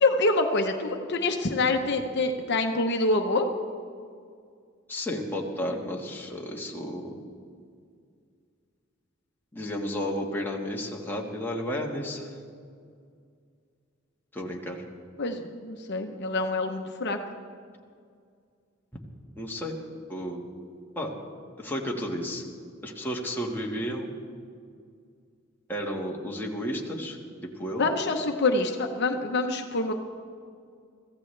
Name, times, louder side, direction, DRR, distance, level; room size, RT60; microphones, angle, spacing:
voice 1, 0.0-3.5 15.2-17.2 27.8-29.9, left 2 dB, 55° left, 4 dB, 0.9 m, -26 dB
voice 2, 4.9-7.2 9.5-12.3 14.3-14.8 19.4-19.7 20.1-20.4 21.0-21.1 21.6-22.5 22.8-24.1 25.7-27.2 27.4-27.9, equal, 10° left, -1 dB, 1.6 m, -32 dB
23.5 x 15.0 x 3.3 m, 2.2 s
head